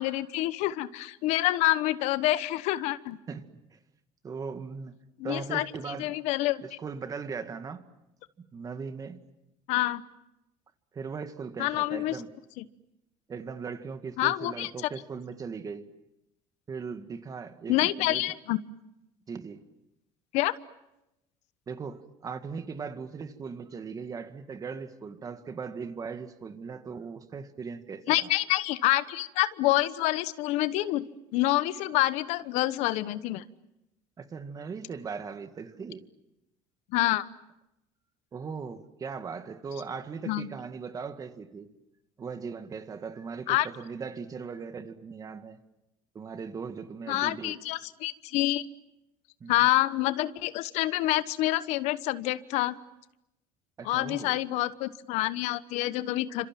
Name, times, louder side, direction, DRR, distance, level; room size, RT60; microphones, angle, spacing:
voice 1, 0.0-3.2 5.2-6.8 9.7-10.0 11.6-12.2 12.6-12.7 14.2-14.7 17.7-18.6 20.3-20.5 28.1-31.0 31.3-33.4 36.9-37.3 40.3-40.5 43.5-43.7 47.1-48.6 49.5-52.8 53.8-56.5, left 16 dB, 75° left, 1.1 m, -27 dB
voice 2, 4.2-5.0 5.2-6.1 6.6-7.8 8.4-9.2 10.9-12.3 13.3-15.9 16.7-18.3 19.3-19.6 21.7-28.3 34.2-36.1 38.3-41.7 42.2-45.6 46.1-47.6 49.4-49.5 53.8-54.4, right 5 dB, 30° right, 2.0 m, -39 dB
29.0 x 26.5 x 7.6 m
cardioid pair, 115°, 12 cm